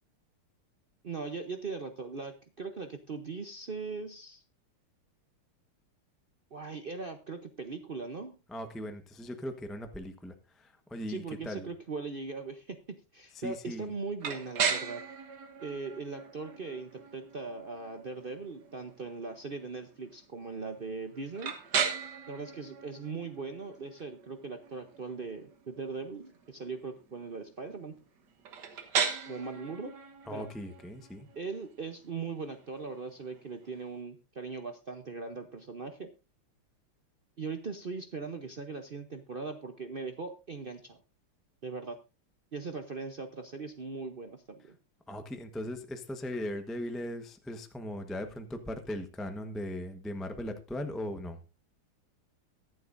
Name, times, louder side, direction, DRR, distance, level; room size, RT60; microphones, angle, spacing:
voice 1, 1.0-4.4 6.5-8.4 11.1-12.8 13.1-15.0 15.6-21.5 22.3-27.9 29.2-29.9 30.3-30.5 31.3-36.1 37.4-41.0 41.6-42.0 42.5-44.8, right 4 dB, 75° right, 6 dB, 0.5 m, -39 dB
voice 2, 8.5-11.7 13.3-13.9 30.3-31.3 45.1-51.4, left 1 dB, ahead, 6 dB, 0.5 m, -39 dB
sound 1, 14.2-34.0, right 6 dB, 55° right, 1.9 m, -38 dB
23.0 x 7.8 x 2.6 m, 0.29 s
omnidirectional pair, 2.4 m